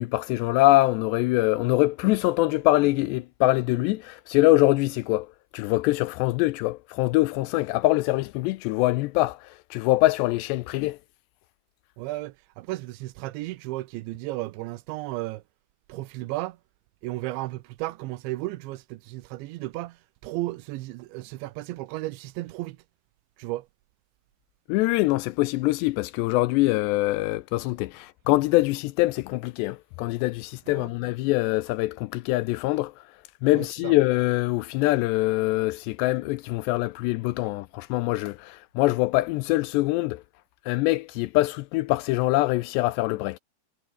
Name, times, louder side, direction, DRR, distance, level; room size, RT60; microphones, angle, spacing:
voice 1, 0.0-11.0 24.7-32.9 33.4-40.2 40.7-43.4, left 19 dB, 80° left, 2.6 m, -24 dB
voice 2, 12.0-15.4 15.9-16.6 17.0-22.8 23.4-23.7 30.7-30.9 33.5-33.9, right 18 dB, 80° right, 3.1 m, -34 dB
omnidirectional pair, 5.3 m